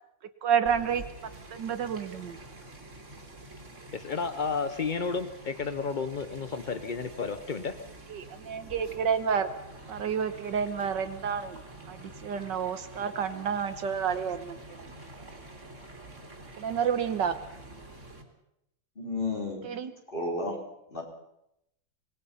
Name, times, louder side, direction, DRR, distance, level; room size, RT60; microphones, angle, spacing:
voice 1, 0.4-1.0 1.5-2.4 8.1-9.5 9.9-11.6 11.9-14.9 16.6-17.4 19.6-19.9, right 7 dB, 70° right, 10 dB, 1.8 m, -30 dB
sound 1, 0.7-18.2, right 2 dB, 40° right, 3.4 m, -47 dB
voice 2, 3.9-7.8, left 5 dB, 60° left, 10 dB, 0.5 m, -32 dB
voice 3, 18.9-19.6 20.1-20.6 20.9-21.0, left 2 dB, 25° left, -2 dB, 5.1 m, -32 dB
25.0 x 20.5 x 5.6 m, 0.82 s
omnidirectional pair, 2.1 m